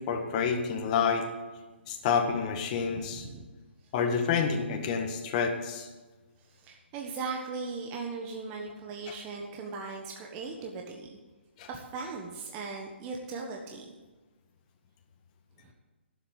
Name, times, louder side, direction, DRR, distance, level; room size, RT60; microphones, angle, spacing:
voice 1, 0.1-1.3 1.9-3.2 3.9-5.9 11.6-11.7, left 6 dB, 35° left, 3 dB, 1.6 m, -28 dB
voice 2, 2.7-3.4 6.5-11.2 11.7-13.9 15.6-15.7, right 4 dB, 25° right, 1 dB, 1.3 m, -38 dB
11.5 x 7.7 x 8.1 m, 1.2 s
hypercardioid pair, 145°, 6 cm